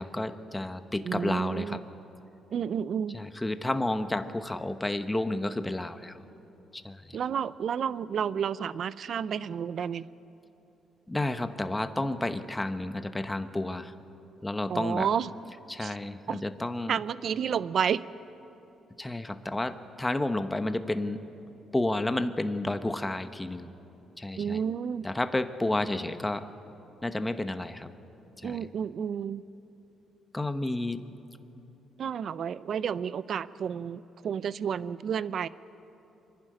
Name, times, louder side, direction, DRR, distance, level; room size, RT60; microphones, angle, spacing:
voice 1, 0.0-1.8 3.1-6.2 6.7-7.2 11.1-13.9 14.4-15.1 15.7-17.0 19.0-21.2 21.7-23.7 24.2-24.6 25.0-26.5 27.0-27.9 28.4-28.7 30.3-31.1, left 2 dB, 15° left, 10 dB, 1.0 m, -31 dB
voice 2, 1.0-1.8 2.5-3.2 7.1-10.1 14.7-15.3 15.8-15.9 16.3-16.4 16.9-18.0 24.4-25.1 28.4-29.4 32.0-35.5, right 8 dB, 60° right, 17 dB, 0.5 m, -31 dB
25.5 x 11.5 x 10.0 m, 3.0 s
cardioid pair, 90°, 0 cm